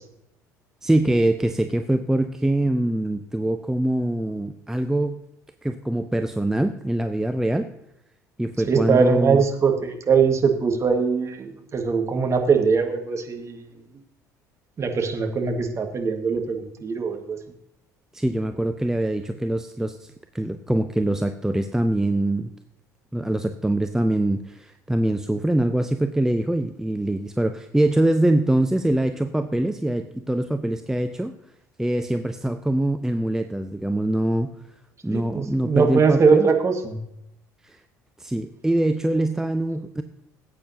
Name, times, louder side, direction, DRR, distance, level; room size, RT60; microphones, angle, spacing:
voice 1, 0.8-5.2 5.6-7.7 8.4-9.4 18.1-22.5 23.1-31.3 31.8-34.5 35.0-36.5 37.6-37.8 38.2-40.0, right 1 dB, 5° right, 7 dB, 0.6 m, -23 dB
voice 2, 8.7-13.7 14.8-17.4 35.1-37.0, right 5 dB, 30° right, 4 dB, 1.8 m, -21 dB
17.5 x 8.6 x 2.8 m, 0.79 s
figure-of-eight pair, 55°, 9 cm